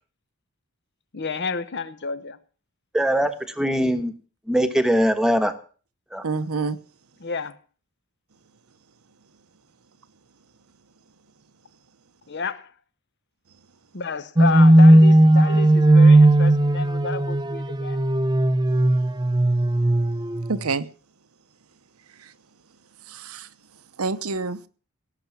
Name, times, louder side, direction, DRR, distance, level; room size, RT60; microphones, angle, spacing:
voice 1, 1.1-2.4 7.2-7.6 12.3-12.7 13.9-18.0, left 4 dB, 50° left, 1.0 m, -31 dB
voice 2, 2.9-3.3 3.6-4.1 4.5-5.5 6.1-6.2, equal, 5° right, 1.2 m, -21 dB
voice 3, 6.2-6.8 20.5-20.9 22.2-22.3 23.1-23.5 24.0-24.6, right 4 dB, 75° right, 0.9 m, -27 dB
sound 1, 14.4-20.6, right 1 dB, 20° right, 0.6 m, -16 dB
17.5 x 6.9 x 7.3 m
head